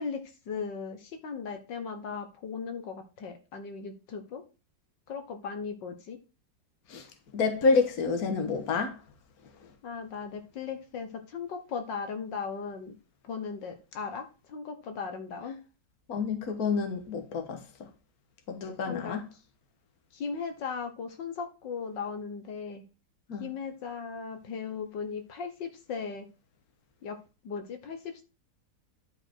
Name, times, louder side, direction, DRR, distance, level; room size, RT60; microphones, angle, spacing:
voice 1, 0.0-4.4 5.1-6.2 9.8-12.9 13.2-15.6 18.9-19.2 20.1-22.8 23.4-26.3 27.0-27.2 27.4-28.2, left 5 dB, 75° left, 1.9 m, -37 dB
voice 2, 7.3-9.0 9.6-9.7 16.1-17.9 18.5-19.3 23.3-23.5, left 4 dB, 55° left, 1.7 m, -28 dB
11.5 x 4.8 x 4.5 m
omnidirectional pair, 2.0 m